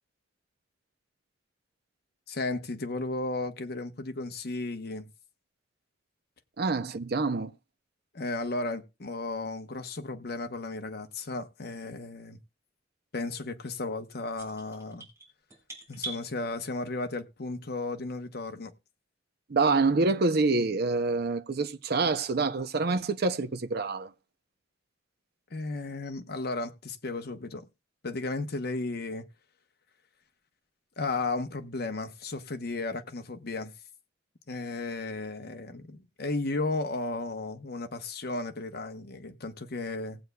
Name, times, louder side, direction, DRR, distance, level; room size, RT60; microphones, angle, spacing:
voice 1, 2.3-5.1 8.1-12.4 13.1-15.0 15.9-18.7 25.5-27.6 28.0-29.3 31.0-33.7 34.5-40.2, left 3 dB, 55° left, 0.9 m, -34 dB
voice 2, 6.6-7.5 19.5-24.1, right 3 dB, 55° right, 0.6 m, -26 dB
sound 1, 14.4-16.2, right 2 dB, 15° right, 3.5 m, -41 dB
18.5 x 8.0 x 2.3 m
head